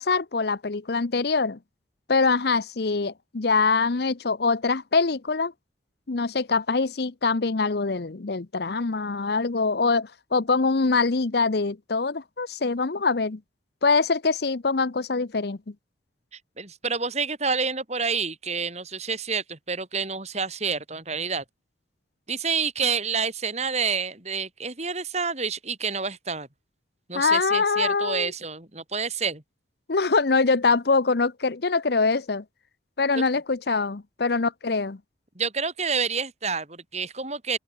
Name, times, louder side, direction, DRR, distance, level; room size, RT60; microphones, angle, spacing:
voice 1, 0.0-1.6 2.1-5.5 6.1-13.4 13.8-15.6 27.1-28.3 29.9-32.4 33.0-35.0, left 4 dB, 55° left, 0.7 m, -24 dB
voice 2, 16.6-21.4 22.3-26.5 27.1-29.4 33.2-33.3 35.4-37.6, right 5 dB, 35° right, 3.8 m, -28 dB
open air
head